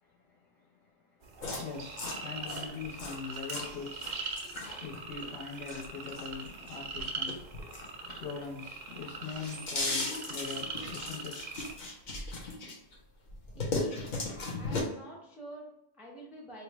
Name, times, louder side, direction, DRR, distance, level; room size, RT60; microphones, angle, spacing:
voice 1, 0.0-0.9 1.2-11.5, left 5 dB, 70° left, -1 dB, 1.1 m, -43 dB
sound 1, 1.2-11.7, right 4 dB, 60° right, 0.4 m, -42 dB
sound 2, 1.4-8.5 8.9-12.9 13.3-14.8, left 3 dB, 45° left, 0.7 m, -37 dB
voice 2, 13.6-14.2 14.6-16.6, right 1 dB, ahead, -2 dB, 0.5 m, -48 dB
3.1 x 2.2 x 4.0 m, 0.87 s
omnidirectional pair, 1.3 m